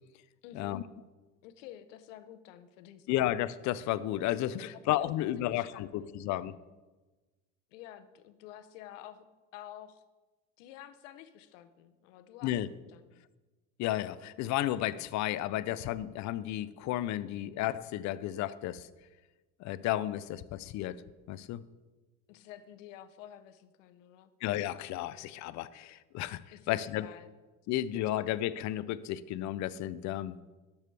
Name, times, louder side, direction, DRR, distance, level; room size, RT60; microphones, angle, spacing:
voice 1, 0.4-0.8 1.4-3.1 4.5-4.7 5.4-6.2 7.7-9.2 9.5-10.0 10.6-12.6 12.9-13.2 22.3-24.3 26.5-27.3, left 11 dB, 85° left, 11 dB, 0.8 m, -50 dB
voice 2, 3.1-6.5 12.4-12.7 13.8-18.9 19.6-21.0 21.3-21.6 24.4-26.4 26.7-27.1 27.7-30.4, left 13 dB, 50° left, 16 dB, 0.5 m, -33 dB
12.0 x 7.0 x 3.3 m, 1.2 s
supercardioid pair, 105°, 37 cm